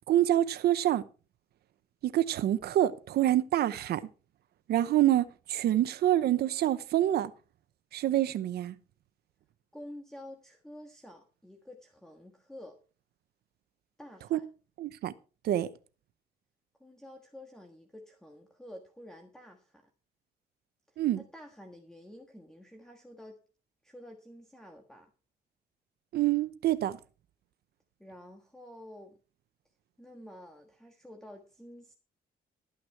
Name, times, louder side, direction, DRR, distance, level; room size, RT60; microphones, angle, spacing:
voice 1, 0.1-1.0 2.0-4.0 4.7-7.3 7.9-8.7 14.3-14.4 14.8-15.1 15.4-15.7 21.0-21.2 26.1-27.0, right 13 dB, 75° right, 0.8 m, -26 dB
voice 2, 9.7-12.8 14.0-14.4 16.8-19.9 20.9-23.4 23.8-25.1 28.0-29.2 30.0-31.9, left 1 dB, 5° left, 1.5 m, -50 dB
13.0 x 9.4 x 4.6 m
cardioid pair, 140°, 17 cm